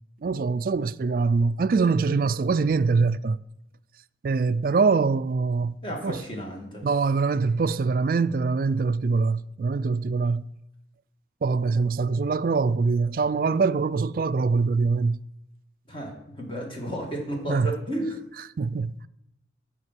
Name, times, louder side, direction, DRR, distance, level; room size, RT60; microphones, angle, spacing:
voice 1, 0.2-3.4 4.2-5.8 6.0-6.2 6.8-10.5 11.4-15.2 17.5-17.7 18.6-19.0, right 4 dB, 50° right, 0.3 m, -23 dB
voice 2, 5.8-6.8 15.9-18.2, right 1 dB, 30° left, 2.2 m, -33 dB
9.5 x 5.3 x 7.4 m
head